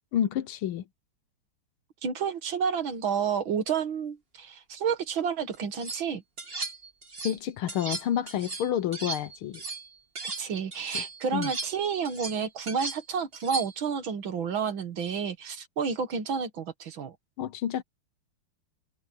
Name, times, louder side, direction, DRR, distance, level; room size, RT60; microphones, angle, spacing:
voice 1, 0.1-0.8 7.2-9.6 10.9-11.0 11.3-11.5 17.4-17.8, left 10 dB, 75° left, 1.7 m, -29 dB
voice 2, 2.0-6.2 10.4-17.2, right 6 dB, 65° right, 2.4 m, -30 dB
sound 1, 5.5-6.0 6.4-7.4 7.7-10.5 10.7-13.9, right 3 dB, 30° right, 2.0 m, -37 dB
omnidirectional pair, 2.4 m